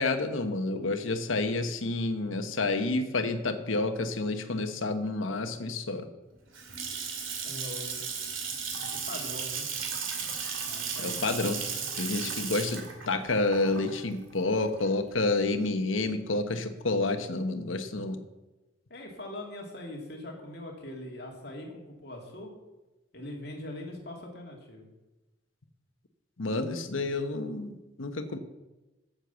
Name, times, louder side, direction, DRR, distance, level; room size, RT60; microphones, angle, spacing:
voice 1, 0.0-6.1 11.0-11.6 12.0-18.2 26.4-28.4, left 2 dB, 85° left, 9 dB, 1.0 m, -29 dB
Water tap faucet / Sink (filling or washing) / Splash splatter, 6.3-15.2, right 6 dB, 90° right, 2.4 m, -35 dB
voice 2, 7.4-8.0 8.9-9.7 10.6-11.6 18.9-22.5 23.1-24.9, left 1 dB, 55° left, 0 dB, 2.4 m, -42 dB
9.9 x 7.7 x 6.9 m, 1.1 s
head